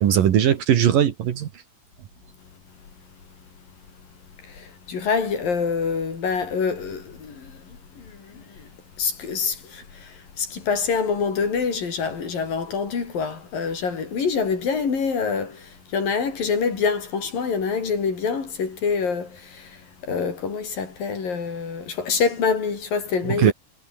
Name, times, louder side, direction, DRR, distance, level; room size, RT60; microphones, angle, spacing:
voice 1, 0.0-1.5 23.3-23.5, right 10 dB, 60° right, 3.0 m, -19 dB
voice 2, 4.4-8.7 9.0-23.5, left 5 dB, 55° left, 6.0 m, -26 dB
omnidirectional pair, 4.8 m